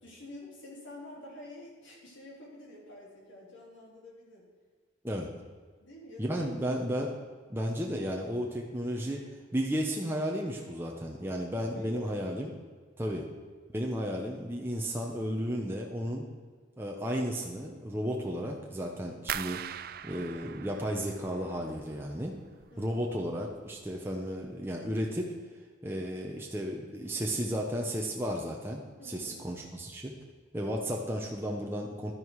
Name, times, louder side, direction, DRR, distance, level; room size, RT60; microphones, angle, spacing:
voice 1, 0.0-4.5 5.8-6.9 11.7-12.3 13.2-13.5 22.7-23.1 29.0-29.4, left 1 dB, 85° left, -3 dB, 3.9 m, -48 dB
voice 2, 6.2-7.1 7.5-9.2 9.5-12.5 13.0-13.3 13.7-16.3 16.8-19.6 20.0-22.3 22.8-25.3 25.8-30.1 30.5-32.1, equal, 10° right, -1 dB, 1.0 m, -33 dB
sound 1, 19.3-22.2 22.4-23.1 23.5-23.9 24.3-24.5, right 9 dB, 50° right, 0.4 m, -41 dB
11.5 x 10.5 x 4.8 m, 1.6 s
head